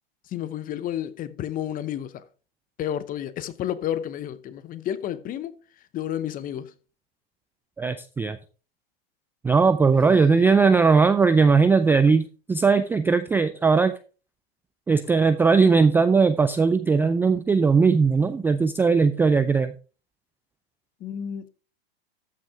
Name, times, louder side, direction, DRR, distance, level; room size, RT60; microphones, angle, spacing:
voice 1, 0.3-2.2 2.8-5.6 5.9-6.7 9.9-10.3 21.0-21.5, left 10 dB, 30° left, 0.8 m, -31 dB
voice 2, 7.8-8.4 9.4-13.9 14.9-19.7, right 4 dB, 5° right, 0.3 m, -19 dB
13.5 x 6.1 x 3.5 m
hypercardioid pair, 105°, 30 cm